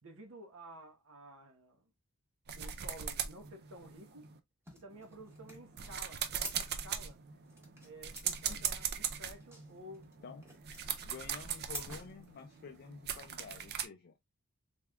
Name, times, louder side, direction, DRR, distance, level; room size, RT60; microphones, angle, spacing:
voice 1, 0.0-1.9 2.6-4.3 4.7-7.2 7.8-10.1, right 1 dB, 65° right, 1.0 m, -52 dB
sound 1, 2.5-4.4 4.9-13.9, right 8 dB, 45° right, 0.4 m, -40 dB
sound 2, 4.7-12.8, right 1 dB, 10° right, 1.1 m, -50 dB
voice 2, 11.0-14.2, left 5 dB, 45° left, 0.4 m, -49 dB
3.5 x 3.5 x 2.2 m
head